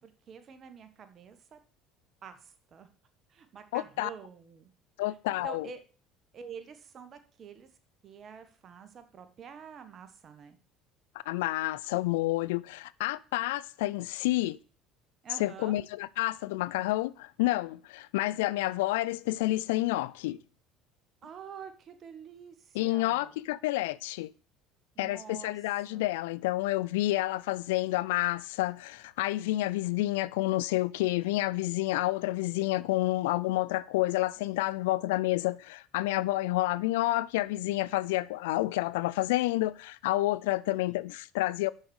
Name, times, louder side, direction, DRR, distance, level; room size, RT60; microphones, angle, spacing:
voice 1, 0.0-1.6 2.2-2.9 3.3-4.7 5.0-5.2 5.4-5.8 6.3-7.7 8.0-10.6 15.2-15.8 21.2-23.4 24.9-26.1, right 7 dB, 45° right, 1.4 m, -47 dB
voice 2, 3.7-4.1 5.0-5.6 11.3-14.6 15.4-20.4 22.8-24.3 25.0-41.7, left 17 dB, 90° left, 0.4 m, -29 dB
6.5 x 6.0 x 7.0 m
supercardioid pair, 95°, 0 cm